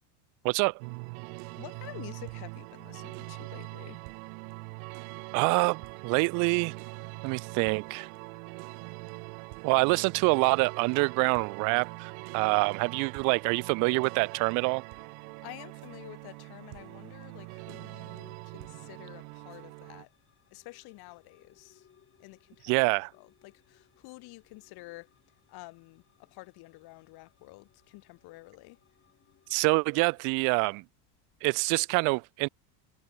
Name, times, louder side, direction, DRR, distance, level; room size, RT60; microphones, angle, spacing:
voice 1, 0.4-0.8 5.3-6.7 7.2-8.1 9.6-14.8 22.6-23.1 29.5-30.8 31.4-32.5, right 31 dB, 45° right, 0.4 m, -26 dB
sound 1, 0.8-20.0, right 32 dB, 70° right, 1.3 m, -43 dB
voice 2, 1.6-4.0 15.4-20.1 20.5-21.9 22.2-22.7 23.1-25.1 25.5-28.8, left 22 dB, 50° left, 2.4 m, -49 dB
sound 2, 16.1-30.4, left 8 dB, 25° left, 4.8 m, -67 dB
supercardioid pair, 135°, 46 cm